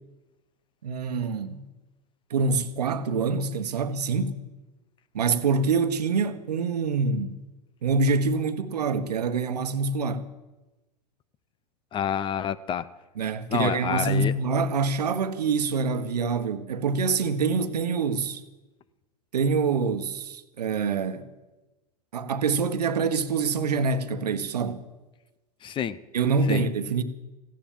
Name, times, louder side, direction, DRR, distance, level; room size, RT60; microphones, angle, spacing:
voice 1, 0.8-1.6 2.3-4.4 5.1-7.4 7.8-10.3 13.2-18.4 19.3-21.2 22.1-24.8 26.1-27.0, right 4 dB, 80° right, 1.2 m, -25 dB
voice 2, 11.9-12.9 13.5-14.3 25.6-26.0 26.5-26.6, left 8 dB, 25° left, 0.6 m, -28 dB
15.5 x 10.5 x 7.3 m
hypercardioid pair, 105°, 20 cm